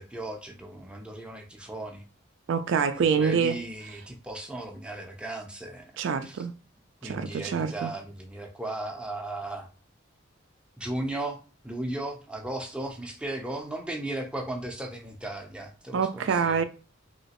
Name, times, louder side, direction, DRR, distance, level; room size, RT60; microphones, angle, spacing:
voice 1, 0.0-2.0 3.2-6.0 6.2-6.5 7.0-9.7 10.8-11.4 11.6-16.6, right 1 dB, 5° right, 0.4 m, -36 dB
voice 2, 2.5-3.6 6.0-6.5 7.0-7.9 15.9-16.6, right 6 dB, 65° right, 0.3 m, -26 dB
3.1 x 2.9 x 2.8 m
head